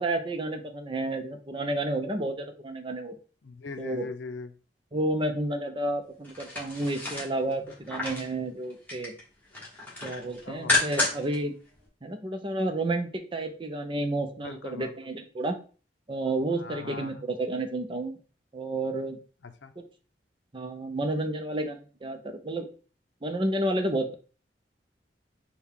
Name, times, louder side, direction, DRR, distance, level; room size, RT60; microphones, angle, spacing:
voice 1, 0.0-3.2 3.8-4.1 4.9-9.1 10.0-11.5 12.0-15.6 16.1-18.2 18.5-19.2 20.5-22.7 23.2-24.1, right 1 dB, 30° right, 6 dB, 0.6 m, -31 dB
voice 2, 3.4-4.5 10.4-10.8 14.4-14.9 16.5-17.2 19.4-19.7, left 4 dB, 75° left, 8 dB, 0.6 m, -40 dB
sound 1, 6.2-8.3 8.7-9.2 9.5-11.4 11.7-11.8, left 2 dB, 10° left, 1.4 m, -30 dB
6.2 x 2.3 x 3.6 m, 0.38 s
head